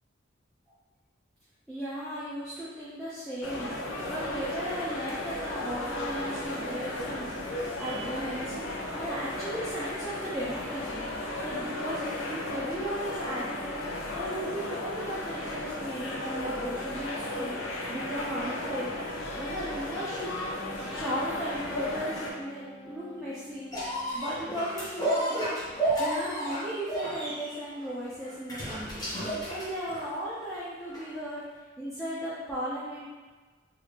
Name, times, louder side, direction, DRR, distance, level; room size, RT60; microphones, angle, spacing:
voice 1, 1.7-3.7 4.1-7.4 7.6-13.8 14.1-17.6 17.9-18.9 19.4-20.3 20.9-23.7 24.1-25.5 26.0-31.4 31.8-33.1, equal, ahead, -11 dB, 0.5 m, -36 dB
sound 1, 3.4-22.3, left 1 dB, 80° left, 0.5 m, -35 dB
Guitar, 19.9-24.6, equal, 60° left, 1.3 m, -46 dB
sound 2, 23.7-30.2 30.9-31.0, right 1 dB, 20° left, 0.8 m, -32 dB
3.1 x 2.4 x 3.3 m, 1.3 s
head